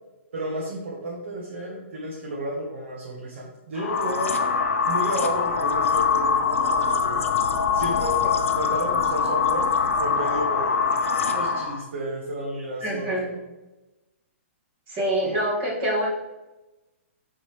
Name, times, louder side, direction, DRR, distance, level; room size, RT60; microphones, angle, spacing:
voice 1, 0.3-4.3 4.9-7.2 7.7-8.2 8.5-9.7 10.0-10.8 11.3-13.3, right 1 dB, 55° right, -3 dB, 1.5 m, -32 dB
sound 1, 3.8-11.8, left 5 dB, 70° left, 0.7 m, -23 dB
voice 2, 12.8-13.4 14.9-16.1, equal, 25° right, -4 dB, 2.2 m, -26 dB
10.0 x 4.1 x 3.3 m, 1.1 s
hypercardioid pair, 160°, 7 cm